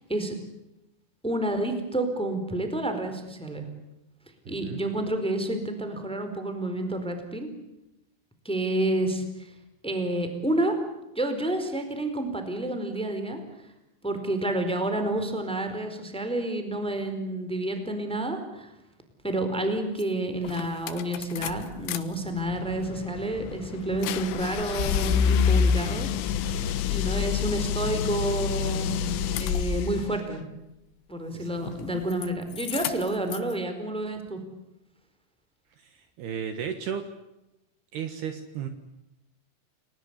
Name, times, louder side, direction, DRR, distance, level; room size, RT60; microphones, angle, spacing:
voice 1, 1.2-3.6 4.5-7.5 8.4-9.5 9.8-10.7 11.1-13.4 14.0-18.7 19.2-26.1 26.9-28.9 29.4-30.4 31.1-34.4, right 1 dB, ahead, 7 dB, 3.5 m, -29 dB
voice 2, 4.5-4.8 26.4-26.8 31.3-31.6 35.8-35.9 36.2-37.0 37.9-38.7, right 8 dB, 65° right, 8 dB, 3.2 m, -34 dB
sound 1, 20.0-20.1 20.5-22.0 22.3-30.1 31.6-32.3 32.5-33.5, left 7 dB, 85° left, 3.8 m, -28 dB
29.5 x 20.0 x 8.3 m, 0.92 s
omnidirectional pair, 5.6 m